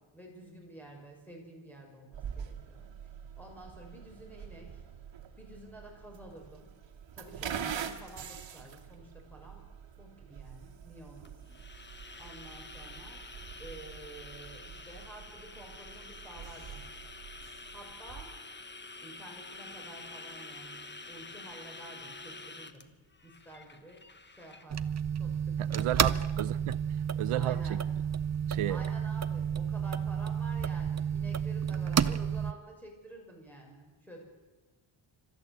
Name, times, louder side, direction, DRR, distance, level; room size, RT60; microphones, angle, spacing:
voice 1, 0.0-2.9 3.4-4.8 5.4-6.7 7.2-9.7 10.0-11.6 12.2-13.3 13.6-16.8 17.7-18.3 19.0-22.9 23.2-24.0 24.4-26.2 27.3-27.8 28.7-34.2, right 1 dB, 5° left, 0 dB, 6.3 m, -50 dB
sound 1, 2.1-18.3, right 8 dB, 65° right, 1.9 m, -45 dB
sound 2, 11.2-24.7, left 3 dB, 20° left, 1.2 m, -48 dB
sound 3, 24.7-32.5, right 7 dB, 35° right, 0.7 m, -31 dB
voice 2, 25.6-26.8 27.2-27.8 28.5-28.8, right 14 dB, 85° right, 16 dB, 0.7 m, -32 dB
27.5 x 13.5 x 8.1 m, 1.3 s
wide cardioid pair, 125°, 49 cm